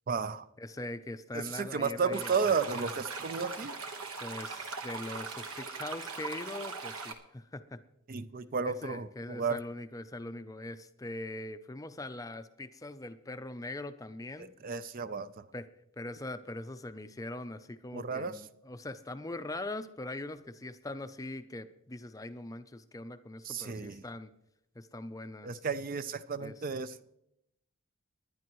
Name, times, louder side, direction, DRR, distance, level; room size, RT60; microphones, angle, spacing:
voice 1, 0.1-0.5 1.3-3.8 8.1-9.6 14.4-15.4 17.9-18.4 23.4-24.0 25.4-27.1, right 5 dB, 40° right, 0.4 m, -33 dB
voice 2, 0.6-2.3 2.8-2.9 4.2-7.8 8.7-14.5 15.5-15.7 16.0-24.3 24.8-25.6 26.4-26.5, left 2 dB, 15° left, 0.5 m, -42 dB
sound 1, 2.1-7.1, right 4 dB, 85° right, 1.3 m, -40 dB
20.5 x 10.5 x 3.1 m
head